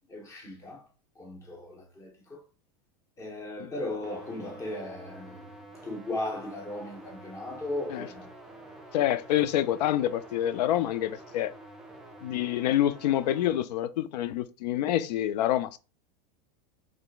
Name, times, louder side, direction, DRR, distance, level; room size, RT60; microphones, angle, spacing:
voice 1, 0.1-0.9 1.1-2.4 3.2-8.3, left 1 dB, 15° left, 0.9 m, -37 dB
sound 1, 4.0-13.6, right 1 dB, 5° right, 0.4 m, -48 dB
voice 2, 8.9-11.5 12.2-15.8, left 12 dB, 90° left, 0.4 m, -27 dB
3.8 x 3.2 x 2.4 m
supercardioid pair, 160°, 20 cm